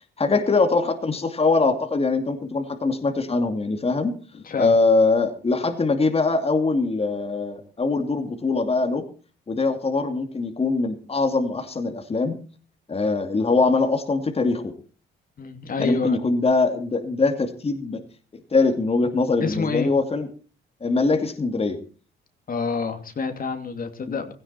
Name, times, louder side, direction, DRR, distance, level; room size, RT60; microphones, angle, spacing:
voice 1, 0.2-4.1 4.6-9.0 9.5-12.3 12.9-14.7 15.8-18.0 18.5-20.3 20.8-21.8 24.1-24.2, left 3 dB, 30° left, 5 dB, 2.6 m, -22 dB
voice 2, 4.4-4.8 15.4-16.2 19.4-19.9 22.5-24.3, left 5 dB, 45° left, 6 dB, 2.8 m, -28 dB
17.0 x 16.0 x 4.3 m, 0.38 s
cardioid pair, 90°, 20 cm